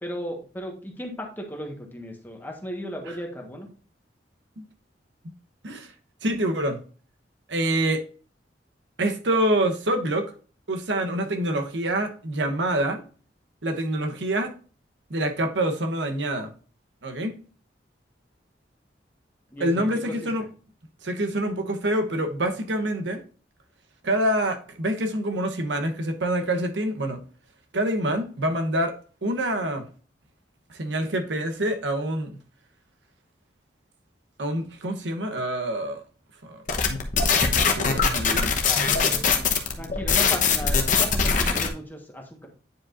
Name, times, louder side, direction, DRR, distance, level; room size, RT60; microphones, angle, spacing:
voice 1, 0.0-3.7 19.5-20.5 38.6-39.4 39.8-42.5, equal, 10° left, 1.3 m, -36 dB
voice 2, 6.2-6.8 7.5-8.0 9.0-10.3 10.7-13.0 13.6-14.5 15.1-16.5 17.0-17.4 19.6-20.4 21.0-23.2 24.0-27.2 27.7-28.9 29.2-29.8 30.7-32.3 34.4-36.0 36.4-36.6 37.4-39.4, right 1 dB, 90° right, 1.0 m, -26 dB
sound 1, 36.7-41.7, left 5 dB, 45° left, 1.0 m, -22 dB
9.3 x 4.9 x 2.5 m
head